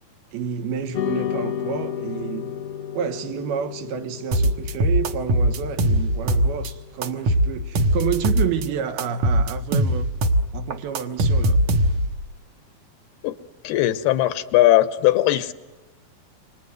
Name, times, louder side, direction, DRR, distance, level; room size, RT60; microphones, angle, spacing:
voice 1, 0.3-2.6 2.9-10.1 10.5-11.6, right 8 dB, 75° right, 3.2 m, -29 dB
sound 1, 0.9-9.5, left 9 dB, 70° left, 1.5 m, -34 dB
sound 2, 4.3-6.7 7.0-8.7 9.0-12.2, right 1 dB, 60° right, 2.2 m, -20 dB
voice 2, 13.6-15.5, left 14 dB, 85° left, 3.1 m, -19 dB
29.0 x 26.0 x 7.9 m
omnidirectional pair, 4.5 m